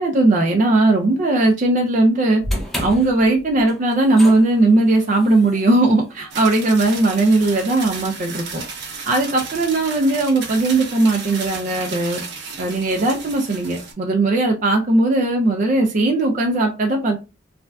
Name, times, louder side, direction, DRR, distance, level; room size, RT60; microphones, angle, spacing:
voice 1, 0.0-2.4 2.8-8.6 9.1-12.2 12.6-17.2, right 2 dB, 40° right, 1 dB, 0.4 m, -18 dB
sound 1, 2.4-8.7, equal, ahead, 0.6 m, -33 dB
sound 2, 6.3-13.9, right 4 dB, 60° right, 0.8 m, -33 dB
3.2 x 2.5 x 2.2 m, 0.30 s
head